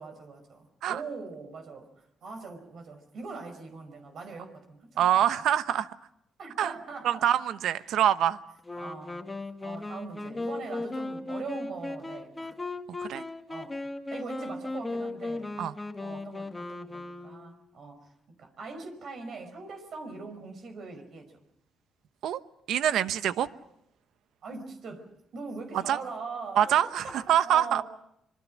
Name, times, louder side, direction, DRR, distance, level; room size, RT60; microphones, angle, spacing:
voice 1, 0.0-1.9 2.2-5.3 6.4-7.3 7.7-8.0 8.7-9.3 9.6-12.6 13.5-13.8 14.1-15.5 16.0-18.0 18.4-21.3 24.4-27.8, right 4 dB, 60° right, 6 dB, 5.2 m, -41 dB
voice 2, 5.0-5.9 6.6-6.7 7.0-8.4 13.0-13.2 15.6-15.7 22.2-22.4 22.7-23.5 25.7-26.0 26.6-27.8, right 10 dB, 80° right, 13 dB, 0.9 m, -25 dB
Wind instrument woodwind instrument, 8.6-17.7, left 2 dB, 20° left, 2.0 m, -37 dB
25.5 x 24.0 x 6.4 m, 0.78 s
cardioid pair, 90°, 0 cm